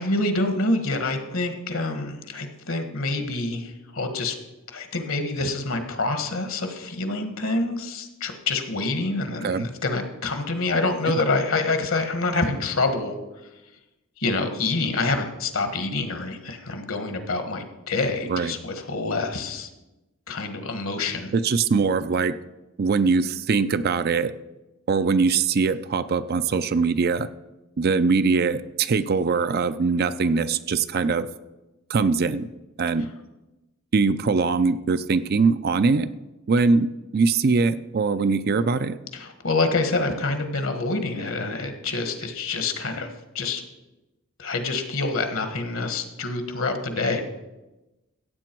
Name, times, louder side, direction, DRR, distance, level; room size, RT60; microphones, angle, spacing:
voice 1, 0.0-4.4 4.7-13.2 14.2-19.7 20.3-21.3 39.1-43.1 43.3-43.6 44.4-47.2, left 3 dB, 65° left, 7 dB, 1.5 m, -26 dB
voice 2, 21.3-22.3 22.8-24.3 24.9-27.3 27.8-31.3 31.9-32.5 32.8-33.1 33.9-36.1 36.5-39.0, right 4 dB, 45° right, 12 dB, 0.4 m, -22 dB
15.0 x 8.5 x 4.5 m, 1.0 s
head